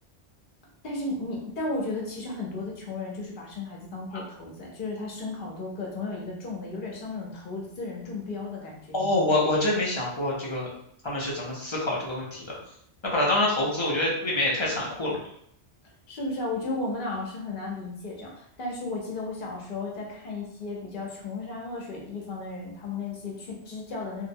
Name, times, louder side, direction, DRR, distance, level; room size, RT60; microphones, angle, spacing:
voice 1, 0.8-9.3 16.1-24.3, left 3 dB, 50° left, -2 dB, 0.8 m, -34 dB
voice 2, 8.9-10.7 11.0-12.6 13.1-15.2, left 1 dB, 35° left, -5 dB, 0.5 m, -26 dB
2.7 x 2.1 x 2.6 m, 0.70 s
omnidirectional pair, 1.2 m